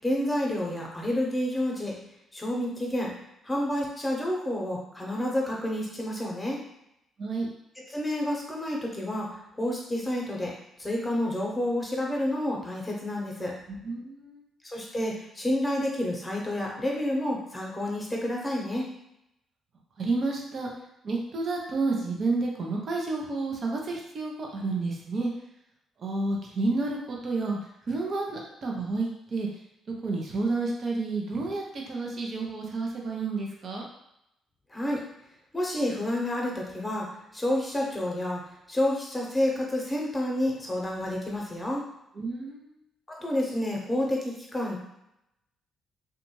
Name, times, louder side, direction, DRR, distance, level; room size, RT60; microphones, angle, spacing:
voice 1, 0.0-1.9 2.3-3.1 3.4-6.6 7.8-10.5 10.8-13.5 14.6-18.9 34.7-35.0 35.5-37.1 37.3-38.4 38.7-41.8 43.1-44.8, left 1 dB, 15° left, -2 dB, 1.0 m, -29 dB
voice 2, 13.7-14.4 20.0-20.7 21.0-25.3 26.0-27.6 27.9-29.5 30.0-33.8 42.2-42.8, right 3 dB, 50° right, -1 dB, 0.7 m, -30 dB
2.5 x 2.3 x 3.1 m, 0.82 s
hypercardioid pair, 45°, 0 cm